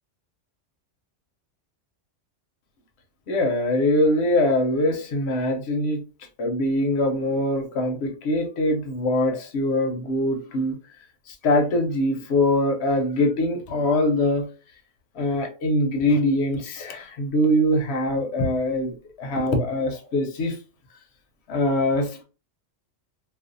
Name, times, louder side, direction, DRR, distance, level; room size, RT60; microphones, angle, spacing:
voice 1, 3.3-6.0 6.4-10.8 11.3-14.4 15.1-20.6 21.5-22.2, left 1 dB, 65° left, 4 dB, 0.8 m, -23 dB
2.4 x 2.3 x 2.5 m, 0.35 s
omnidirectional pair, 1.3 m